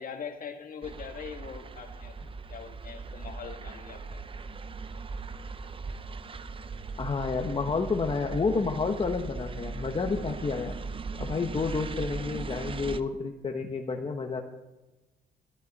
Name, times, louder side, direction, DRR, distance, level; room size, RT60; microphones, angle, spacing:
voice 1, 0.0-2.1 2.5-4.2, left 6 dB, 50° left, 5 dB, 1.7 m, -42 dB
sound 1, 0.8-13.0, right 4 dB, 30° right, 0.7 m, -39 dB
voice 2, 7.0-10.8 11.2-14.4, left 4 dB, 30° left, 3 dB, 1.1 m, -30 dB
13.5 x 13.0 x 4.2 m, 1.1 s
cardioid pair, 95°, 18 cm